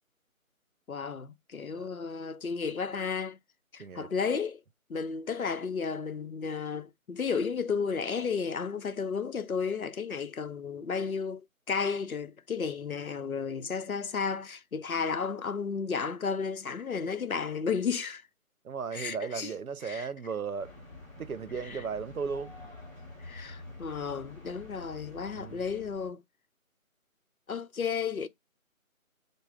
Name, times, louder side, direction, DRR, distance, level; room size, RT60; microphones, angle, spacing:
voice 1, 0.9-3.4 3.7-4.6 4.9-11.4 11.7-18.2 18.9-19.5 19.8-20.1 21.7-21.8 23.2-26.2 27.5-28.3, left 5 dB, 80° left, 0.8 m, -33 dB
voice 2, 3.8-4.1 18.6-20.7 21.2-22.6 25.3-25.6, right 5 dB, 80° right, 0.7 m, -36 dB
sound 1, 20.6-26.1, left 2 dB, 5° left, 2.1 m, -47 dB
6.5 x 2.2 x 3.6 m
figure-of-eight pair, 175°, 42 cm